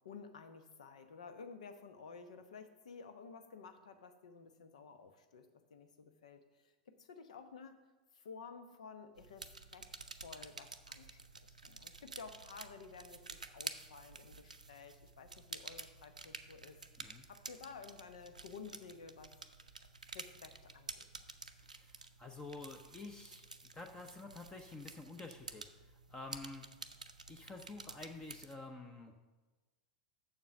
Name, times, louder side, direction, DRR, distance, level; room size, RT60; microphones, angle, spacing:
voice 1, 0.0-7.8 8.1-9.9 10.2-16.8 17.3-19.3 20.1-21.3, left 5 dB, 65° left, 8 dB, 0.9 m, -53 dB
sound 1, 9.2-28.6, right 3 dB, 85° right, 0.5 m, -51 dB
voice 2, 21.6-26.7 27.3-29.1, left 3 dB, 15° left, 4 dB, 0.8 m, -50 dB
7.3 x 6.8 x 5.9 m, 1.2 s
figure-of-eight pair, 90°, 4 cm